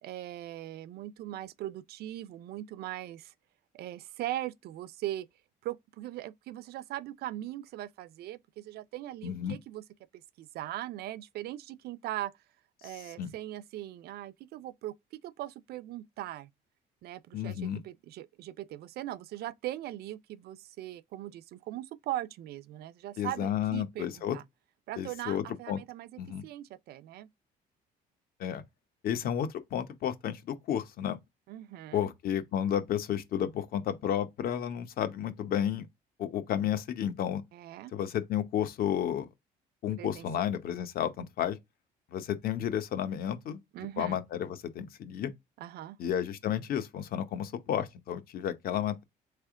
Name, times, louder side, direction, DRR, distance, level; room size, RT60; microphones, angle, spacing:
voice 1, 0.0-3.3 3.7-5.3 5.6-9.8 10.4-12.3 12.8-16.5 17.0-24.4 24.9-26.1 26.4-27.3 31.5-32.1 37.5-37.9 40.0-40.3 43.7-44.2 45.6-46.0, right 14 dB, 70° right, 0.5 m, -40 dB
voice 2, 9.2-9.6 12.8-12.9 13.2-13.3 17.3-17.8 23.2-24.4 25.0-25.8 26.2-26.4 28.4-28.6 29.0-31.2 31.9-35.9 36.2-37.4 37.9-39.3 39.8-41.6 42.1-43.6 44.0-45.3 46.0-49.0, left 10 dB, 60° left, 0.8 m, -32 dB
4.2 x 3.3 x 3.6 m
cardioid pair, 110°, 17 cm